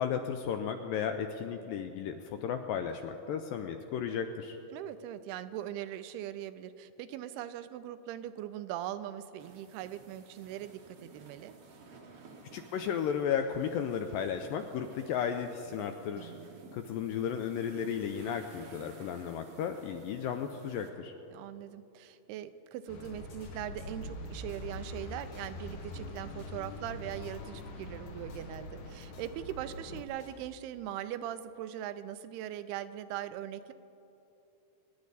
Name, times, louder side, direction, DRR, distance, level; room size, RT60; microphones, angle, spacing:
voice 1, 0.0-4.6 12.5-16.3 16.7-21.1, left 8 dB, 85° left, 6 dB, 2.0 m, -34 dB
voice 2, 4.7-11.5 16.2-16.6 21.3-33.7, right 11 dB, 85° right, 12 dB, 2.6 m, -41 dB
sound 1, 9.4-20.9, right 4 dB, 65° right, 1.4 m, -54 dB
sound 2, 22.9-30.1, left 2 dB, 70° left, 1.9 m, -44 dB
sound 3, 22.9-30.4, equal, 50° left, 2.5 m, -52 dB
24.5 x 10.5 x 4.1 m, 2.8 s
omnidirectional pair, 4.5 m